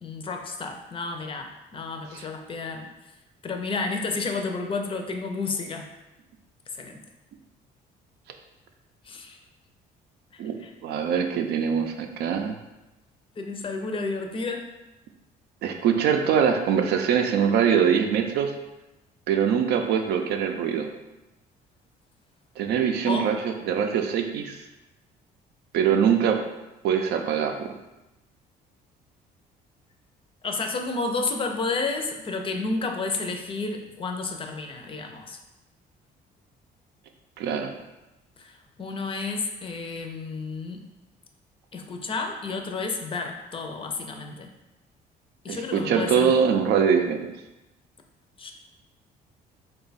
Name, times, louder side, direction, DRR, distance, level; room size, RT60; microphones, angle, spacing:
voice 1, 0.0-2.9 3.4-5.9 6.7-7.0 9.1-9.4 10.6-10.7 13.4-14.7 23.0-23.3 30.4-35.4 38.4-40.9 41.7-44.5 45.4-46.4 48.4-48.5, left 3 dB, 30° left, 4 dB, 0.5 m, -31 dB
voice 2, 10.4-12.5 15.6-18.5 19.3-20.9 22.6-24.6 25.7-26.4 26.8-27.7 37.4-37.7 45.5-47.3, right 7 dB, 75° right, 5 dB, 0.5 m, -23 dB
3.7 x 2.3 x 4.0 m, 0.99 s
cardioid pair, 110°, 17 cm